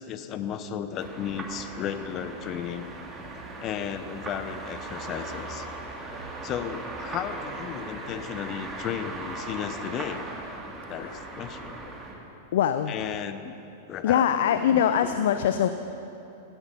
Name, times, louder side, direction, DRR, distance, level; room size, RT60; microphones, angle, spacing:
voice 1, 0.0-2.8 3.6-5.7 6.4-10.3 10.9-11.8 12.9-13.5 13.9-14.2 14.5-15.1, left 8 dB, 35° left, 10 dB, 0.9 m, -34 dB
sound 1, 1.0-12.1, right 2 dB, 20° right, 2.6 m, -38 dB
voice 2, 10.9-11.3 12.5-13.0 14.0-15.7, left 9 dB, 65° left, 10 dB, 0.5 m, -23 dB
17.0 x 13.0 x 5.4 m, 2.9 s
hypercardioid pair, 100°, 0 cm